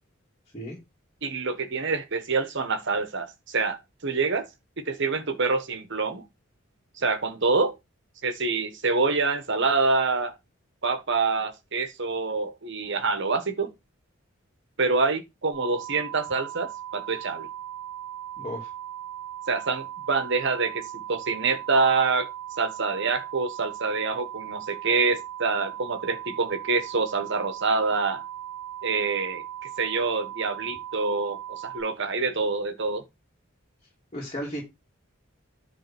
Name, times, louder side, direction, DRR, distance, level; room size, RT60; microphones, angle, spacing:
voice 1, 1.2-4.5 4.8-6.2 7.0-7.7 8.2-10.3 10.8-13.7 14.8-17.5 19.5-22.3 22.6-28.2 28.8-33.0, right 4 dB, 60° right, 1.3 m, -26 dB
sound 1, 15.5-31.8, right 11 dB, ahead, 4.8 m, -38 dB
voice 2, 18.4-18.7 34.1-34.6, equal, 30° left, 2.7 m, -34 dB
10.0 x 3.7 x 6.0 m
head